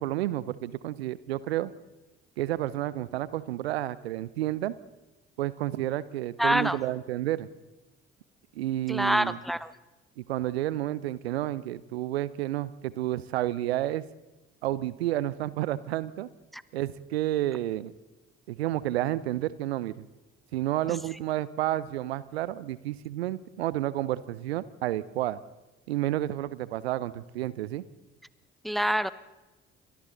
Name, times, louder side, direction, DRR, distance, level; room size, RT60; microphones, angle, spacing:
voice 1, 0.0-1.7 2.4-4.7 5.4-7.5 8.6-9.4 10.2-14.0 14.6-16.3 16.7-17.9 18.5-20.1 20.5-25.4 25.9-27.8, right 14 dB, 80° right, 19 dB, 0.7 m, -30 dB
voice 2, 6.4-6.8 8.9-9.7 16.5-16.6 20.9-21.0 28.6-29.1, equal, ahead, 17 dB, 1.0 m, -26 dB
29.5 x 26.0 x 3.9 m, 1.1 s
figure-of-eight pair, 50°, 31 cm